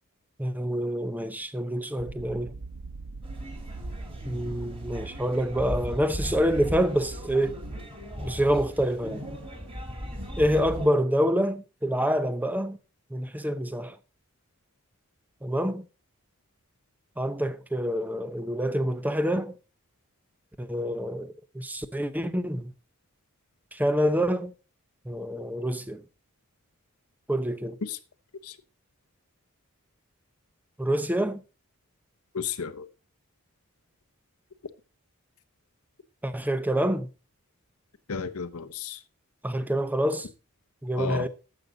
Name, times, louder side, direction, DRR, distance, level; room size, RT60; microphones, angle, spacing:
voice 1, 0.4-2.5 4.2-7.6 8.2-9.2 10.4-12.8 13.1-14.0 15.4-15.9 17.2-19.5 20.6-22.7 23.7-24.5 25.1-26.0 27.3-27.8 30.8-31.4 36.2-37.1 39.4-40.3 40.8-41.3, equal, 10° right, 0.7 m, -27 dB
sound 1, 2.0-7.9, right 3 dB, 65° right, 0.7 m, -42 dB
sound 2, 3.2-10.9, equal, 25° right, 3.1 m, -37 dB
voice 2, 32.3-32.9 38.1-39.0 40.9-41.3, left 6 dB, 85° left, 0.9 m, -33 dB
12.5 x 8.0 x 3.9 m
head